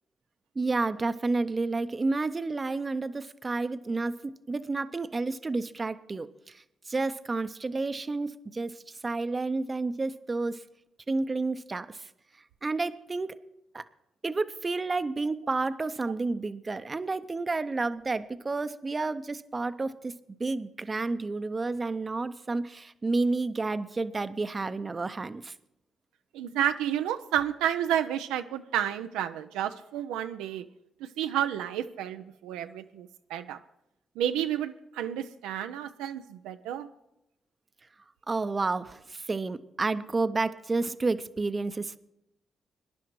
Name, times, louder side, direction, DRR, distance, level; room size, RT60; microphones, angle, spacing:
voice 1, 0.6-10.6 11.1-12.1 12.6-13.4 13.7-13.8 14.2-25.5 38.3-42.0, right 3 dB, 35° right, 13 dB, 0.6 m, -30 dB
voice 2, 26.3-30.7 31.0-33.6 34.2-36.9, right 10 dB, 90° right, 9 dB, 0.3 m, -31 dB
21.5 x 10.5 x 3.1 m, 0.85 s
supercardioid pair, 50°, 0 cm